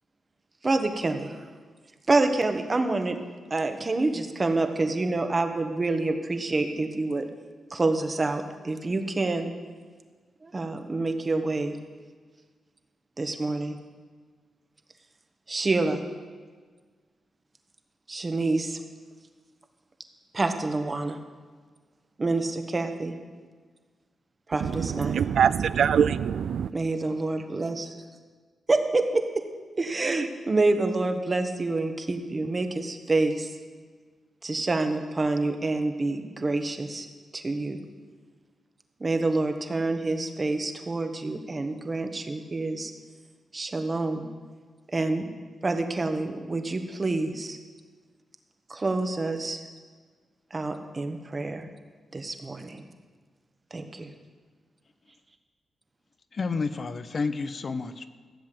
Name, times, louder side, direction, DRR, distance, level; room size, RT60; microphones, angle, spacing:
voice 1, 0.6-1.3 2.1-3.2 3.5-7.3 7.7-9.5 10.4-11.7 13.2-13.8 15.5-16.0 18.1-18.8 20.3-21.2 22.2-23.1 24.5-25.3 26.7-27.9 28.7-29.4 29.8-33.5 34.4-37.1 37.3-37.8 39.0-42.9 43.5-44.3 44.9-45.2 45.6-47.6 48.7-49.6 50.5-51.7 52.1-52.8 53.7-54.1, right 2 dB, 35° right, 1.4 m, -27 dB
voice 2, 24.6-26.7, right 8 dB, 80° right, 0.3 m, -24 dB
voice 3, 56.3-58.1, left 4 dB, 50° left, 0.8 m, -30 dB
15.0 x 7.5 x 7.7 m
cardioid pair, 75°, 0 cm